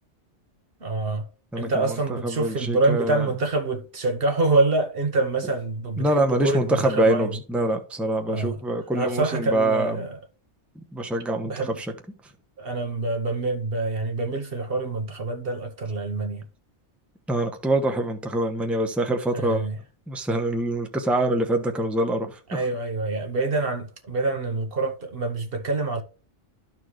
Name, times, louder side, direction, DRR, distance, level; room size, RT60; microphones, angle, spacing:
voice 1, 0.8-1.3 1.6-7.4 8.3-8.6 8.9-10.2 11.4-11.8 12.6-16.5 19.3-19.7 22.5-26.0, right 3 dB, 55° right, 1.2 m, -26 dB
voice 2, 1.5-3.3 6.0-10.0 10.7-11.5 11.8-11.9 12.2-12.3 17.3-19.7 20.1-22.6, right 1 dB, ahead, 0.9 m, -25 dB
13.0 x 4.4 x 3.1 m
omnidirectional pair, 1.2 m